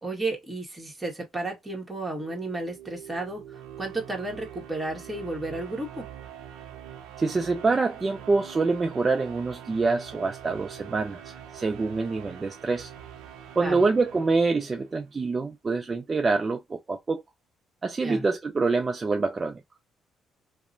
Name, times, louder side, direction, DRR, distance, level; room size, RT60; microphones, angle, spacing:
voice 1, 0.0-6.1 13.6-13.8 18.0-18.2, right 2 dB, 15° right, 1.4 m, -33 dB
sound 1, 2.0-15.1, right 10 dB, 80° right, 0.6 m, -44 dB
voice 2, 7.2-12.9 13.6-17.2 17.8-19.6, right 3 dB, 30° right, 0.4 m, -26 dB
2.9 x 2.0 x 2.6 m
supercardioid pair, 70°, 0 cm